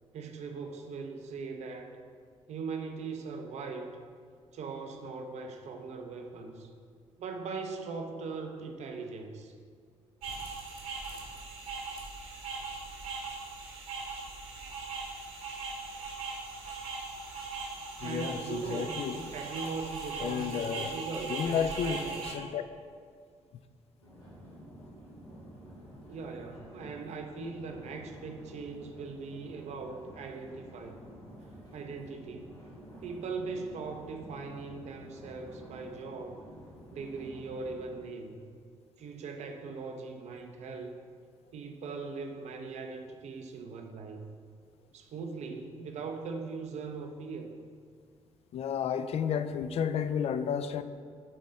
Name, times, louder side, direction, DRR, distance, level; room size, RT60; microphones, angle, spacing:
voice 1, 0.1-2.0 2.5-4.0 4.5-6.7 7.2-9.5 18.0-22.3 26.1-31.1 31.7-32.5 33.0-36.4 36.9-38.4 39.0-40.9 41.5-44.2 44.9-47.5, right 4 dB, 45° right, 4 dB, 0.6 m, -40 dB
sound 1, 10.2-22.3, right 4 dB, 60° right, 1.4 m, -39 dB
voice 2, 18.0-19.2 20.2-21.0 21.3-22.6 48.5-50.8, left 7 dB, 40° left, 11 dB, 0.4 m, -32 dB
sound 2, 24.0-38.0, equal, 90° left, 1.6 m, -50 dB
8.8 x 4.1 x 3.6 m, 2.1 s
figure-of-eight pair, 40°, 16 cm